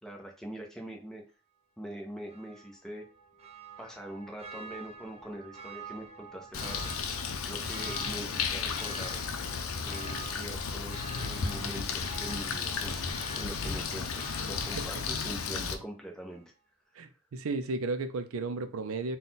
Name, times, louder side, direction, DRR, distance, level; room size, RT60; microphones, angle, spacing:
voice 1, 0.0-1.2 1.8-3.1 3.8-7.0 7.3-9.2 9.8-16.4, right 1 dB, ahead, 0.7 m, -43 dB
Church bell, 2.3-15.9 16.3-16.4, right 4 dB, 30° right, 0.7 m, -48 dB
Bird, 6.5-15.7, left 5 dB, 75° left, 0.5 m, -34 dB
voice 2, 17.0-19.2, right 3 dB, 75° right, 0.4 m, -34 dB
3.8 x 2.3 x 4.0 m
head